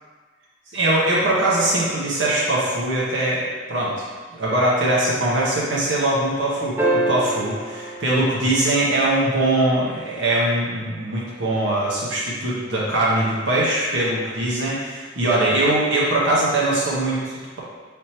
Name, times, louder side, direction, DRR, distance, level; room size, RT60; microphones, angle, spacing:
voice 1, 0.7-4.1 4.3-17.6, right 1 dB, 85° right, -6 dB, 0.8 m, -21 dB
sound 1, 6.8-9.3 11.5-11.6, right 1 dB, 15° right, 0.5 m, -26 dB
4.2 x 3.4 x 2.9 m, 1.4 s
head